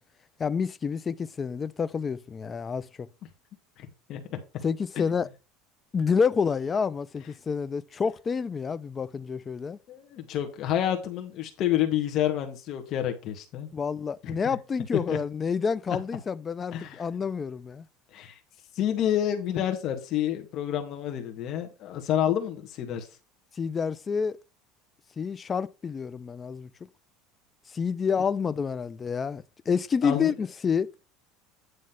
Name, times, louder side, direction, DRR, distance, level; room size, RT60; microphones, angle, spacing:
voice 1, 0.4-3.1 4.6-5.3 5.9-9.8 13.7-17.9 23.6-24.4 25.2-26.7 27.7-30.9, left 6 dB, 25° left, 0.4 m, -28 dB
voice 2, 3.8-4.4 9.9-13.7 14.2-14.3 15.1-15.2 16.7-17.0 18.1-18.4 18.7-23.1 30.0-30.3, left 11 dB, 45° left, 1.4 m, -29 dB
9.4 x 3.2 x 5.6 m
supercardioid pair, 135°, 0 cm